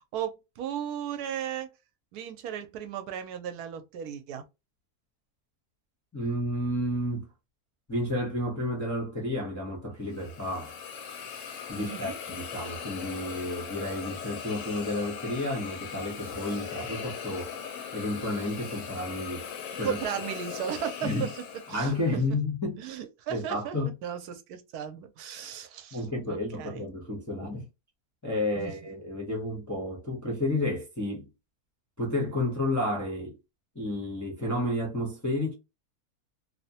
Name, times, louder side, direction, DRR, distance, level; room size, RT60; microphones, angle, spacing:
voice 1, 0.0-1.7 2.1-4.4 11.7-12.2 19.8-21.4 21.7-22.2 22.8-23.8 24.0-26.9 28.6-28.7, right 9 dB, 80° right, 1.1 m, -36 dB
voice 2, 6.1-7.3 7.9-10.7 11.7-17.5 17.9-19.5 19.8-20.0 21.0-21.3 21.7-22.8 23.3-23.9 25.9-27.7 28.2-31.3 32.0-33.4 33.7-35.5, left 1 dB, 20° left, 0.5 m, -31 dB
Hiss, 10.1-22.2, left 7 dB, 65° left, 0.8 m, -39 dB
2.9 x 2.1 x 2.7 m
omnidirectional pair, 1.6 m